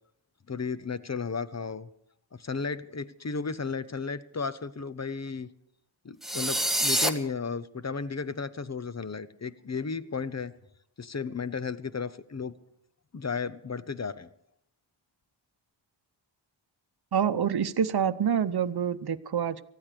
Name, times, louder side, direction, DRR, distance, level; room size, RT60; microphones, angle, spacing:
voice 1, 0.5-1.9 2.3-5.5 6.0-10.5 11.0-12.5 13.1-14.3, left 5 dB, 35° left, 15 dB, 0.9 m, -34 dB
sound 1, 6.2-7.1, right 1 dB, ahead, 1.4 m, -26 dB
voice 2, 17.1-19.6, right 8 dB, 55° right, 10 dB, 0.9 m, -27 dB
19.0 x 14.0 x 5.1 m, 0.73 s
wide cardioid pair, 75°, 45 cm